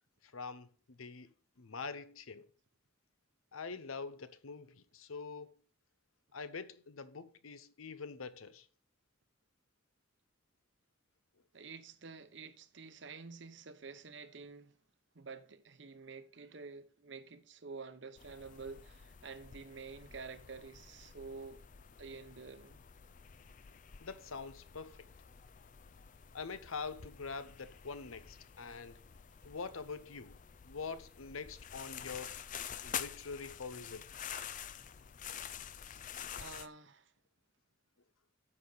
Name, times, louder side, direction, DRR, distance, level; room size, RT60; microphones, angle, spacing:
voice 1, 0.2-2.5 3.5-5.5 6.3-8.7 24.0-25.0 26.3-29.0 29.4-30.4 30.7-32.3 32.8-34.0, left 4 dB, 90° left, 0.8 m, -45 dB
voice 2, 11.5-14.7 15.1-21.6 22.0-22.8 36.4-37.1, right 4 dB, 60° right, 0.9 m, -49 dB
sound 1, 18.2-36.7, left 8 dB, 40° left, 0.4 m, -48 dB
9.7 x 6.7 x 4.0 m
head